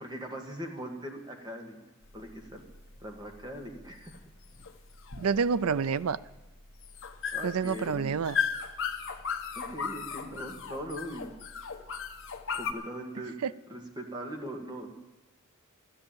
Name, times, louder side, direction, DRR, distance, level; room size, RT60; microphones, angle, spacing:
voice 1, 0.0-1.8 2.1-2.6 3.0-4.2 7.3-8.2 9.6-11.3 12.5-13.4 13.7-14.9, equal, 20° right, 3 dB, 1.9 m, -40 dB
sound 1, 2.0-12.7, left 6 dB, 60° left, 1.2 m, -36 dB
voice 2, 5.2-6.2 7.4-8.4 13.4-13.5, right 6 dB, 80° right, 17 dB, 0.5 m, -28 dB
13.5 x 10.5 x 8.7 m, 1.1 s
head